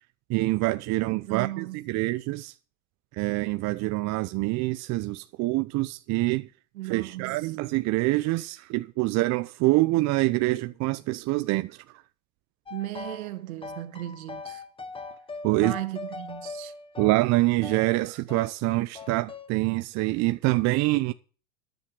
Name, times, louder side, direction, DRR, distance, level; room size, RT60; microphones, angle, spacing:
voice 1, 0.3-2.5 3.1-6.5 6.8-11.8 15.4-15.8 17.0-21.1, right 20 dB, 40° right, 0.8 m, -25 dB
voice 2, 1.3-1.8 6.7-7.4 12.7-14.6 15.6-16.7, right 16 dB, 65° right, 2.0 m, -36 dB
sound 1, 12.7-13.3 13.6-17.9 18.3-18.5 18.9-19.5, left 3 dB, 10° left, 1.3 m, -40 dB
14.0 x 10.5 x 5.0 m
hypercardioid pair, 100°, 44 cm